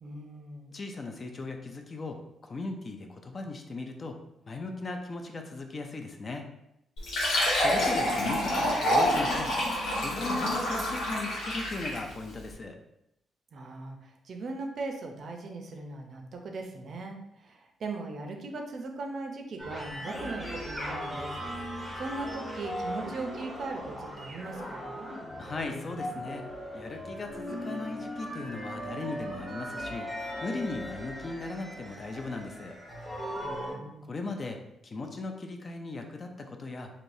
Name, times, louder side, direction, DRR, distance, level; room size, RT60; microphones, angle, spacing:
voice 1, 0.0-0.8 13.5-21.4 22.0-25.1 33.4-34.3, right 3 dB, 50° right, 3 dB, 0.5 m, -39 dB
voice 2, 0.7-4.2 4.5-6.4 7.6-9.5 10.0-12.8 25.4-26.5 26.7-30.1 30.4-32.8 34.0-36.9, left 3 dB, 30° left, 4 dB, 0.3 m, -38 dB
Fill (with liquid), 7.0-12.1, left 1 dB, 85° left, 1.0 m, -27 dB
sound 1, 19.6-33.7, equal, 5° left, 0.8 m, -38 dB
3.3 x 2.7 x 2.6 m, 0.83 s
cardioid pair, 140°, 0 cm